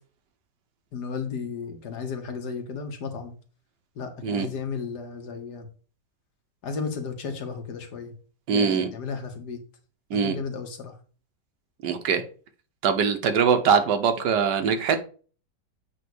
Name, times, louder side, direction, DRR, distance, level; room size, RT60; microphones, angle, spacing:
voice 1, 0.9-3.3 4.0-5.7 6.6-8.1 8.5-9.6 10.1-11.0, left 5 dB, 70° left, 1.8 m, -34 dB
voice 2, 8.5-8.9 10.1-10.3 11.8-12.2 12.8-15.0, right 6 dB, 80° right, 1.6 m, -22 dB
8.2 x 3.0 x 6.2 m
omnidirectional pair, 1.9 m